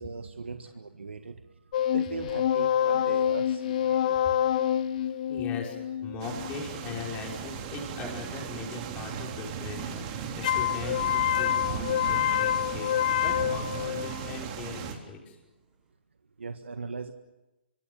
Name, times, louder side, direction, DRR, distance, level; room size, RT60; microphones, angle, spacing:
voice 1, 0.0-1.4 1.9-4.6 16.4-17.1, right 4 dB, 85° right, 7 dB, 1.7 m, -39 dB
sound 1, 1.7-7.1 10.4-14.4, left 10 dB, 45° left, 1.0 m, -27 dB
Cat, 2.3-15.9, right 4 dB, 15° right, 6.4 m, -56 dB
voice 2, 5.3-5.8 6.0-15.4, left 4 dB, 20° left, -1 dB, 5.8 m, -40 dB
sound 2, 6.2-14.9, right 8 dB, 30° right, 3.8 m, -37 dB
25.5 x 25.5 x 7.2 m, 1.0 s
hypercardioid pair, 145°, 6 cm